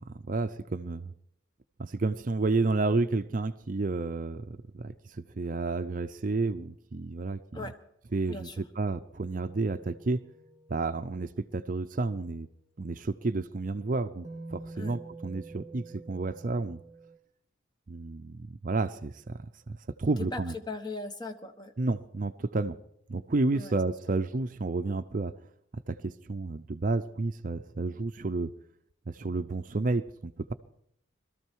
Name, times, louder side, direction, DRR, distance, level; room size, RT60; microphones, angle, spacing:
voice 1, 0.1-1.1 1.8-7.7 8.1-10.2 10.7-12.5 12.8-16.8 17.9-19.4 19.7-20.5 21.8-22.8 23.1-25.3 25.9-28.5 29.1-30.5, right 3 dB, 40° right, 11 dB, 0.5 m, -31 dB
voice 2, 8.3-8.6 14.7-15.0 20.2-21.7 23.5-23.8, left 3 dB, 20° left, 5 dB, 1.4 m, -39 dB
sound 1, 9.5-11.8 14.2-17.2, right 3 dB, 20° right, 1.7 m, -48 dB
22.0 x 13.5 x 4.6 m, 0.74 s
head